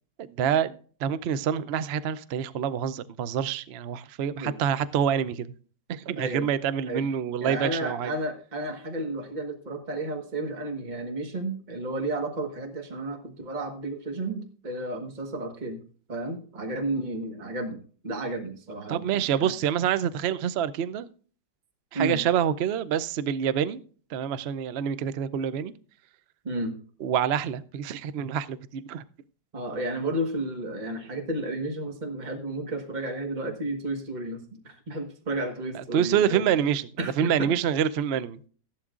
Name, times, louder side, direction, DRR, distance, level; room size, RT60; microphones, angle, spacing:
voice 1, 0.2-5.5 5.9-8.1 18.9-21.1 21.9-23.8 24.1-25.7 27.0-29.0 35.7-38.5, right 8 dB, 80° right, 14 dB, 0.5 m, -27 dB
voice 2, 6.2-6.5 6.9-7.0 7.4-15.8 16.1-19.5 21.9-22.2 26.4-26.8 29.5-36.4 37.0-37.5, right 1 dB, 25° right, 4 dB, 1.4 m, -32 dB
14.5 x 11.5 x 2.5 m, 0.42 s
omnidirectional pair, 1.9 m